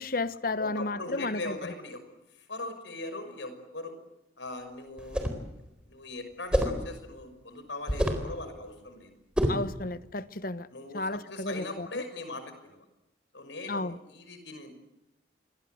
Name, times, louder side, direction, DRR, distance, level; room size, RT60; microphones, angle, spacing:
voice 1, 0.0-1.5 9.5-10.7 10.9-12.0 13.7-14.0, left 2 dB, 50° left, 1.1 m, -33 dB
voice 2, 0.6-2.0 2.3-3.9 4.4-5.3 5.9-9.1 10.7-12.8 13.3-14.7, left 2 dB, 75° left, 6.0 m, -40 dB
sound 1, 5.0-5.5 6.5-6.9 7.9-8.3 9.4-9.7, equal, 5° right, 4.1 m, -27 dB
28.0 x 23.0 x 8.0 m
head